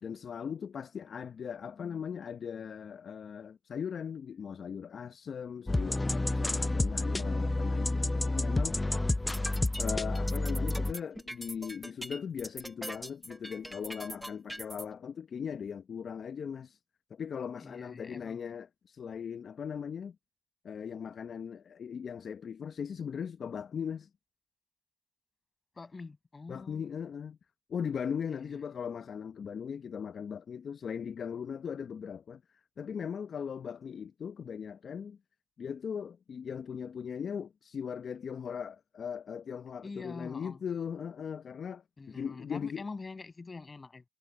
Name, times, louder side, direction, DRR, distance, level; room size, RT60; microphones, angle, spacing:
voice 1, 0.0-8.8 9.8-16.8 17.1-20.2 20.6-24.1 26.5-27.4 27.7-35.2 35.6-42.8, left 7 dB, 60° left, 0.7 m, -39 dB
sound 1, 5.7-10.9, left 2 dB, 20° left, 0.7 m, -29 dB
sound 2, 9.1-14.8, equal, 5° right, 0.9 m, -42 dB
voice 2, 17.6-18.4 25.8-26.9 28.3-28.5 39.8-40.6 42.0-44.0, left 3 dB, 35° left, 7.0 m, -45 dB
supercardioid pair, 55°, 0 cm